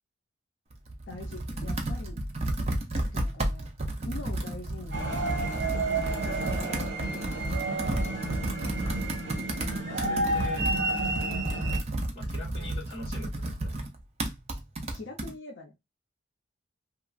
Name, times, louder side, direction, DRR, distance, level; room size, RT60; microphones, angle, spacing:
Computer keyboard, 0.7-15.3, right 1 dB, 30° right, 0.5 m, -32 dB
voice 1, 1.1-2.2 2.9-3.8 4.0-5.0 5.5-7.7 10.0-10.4 14.9-15.7, left 2 dB, 70° left, 1 dB, 0.6 m, -44 dB
sound 1, 4.9-11.8, right 2 dB, 70° right, 1.0 m, -31 dB
voice 2, 8.8-9.3 9.9-10.6 12.1-13.9, left 3 dB, 30° left, -4 dB, 1.2 m, -43 dB
2.9 x 2.3 x 2.4 m, 0.21 s
head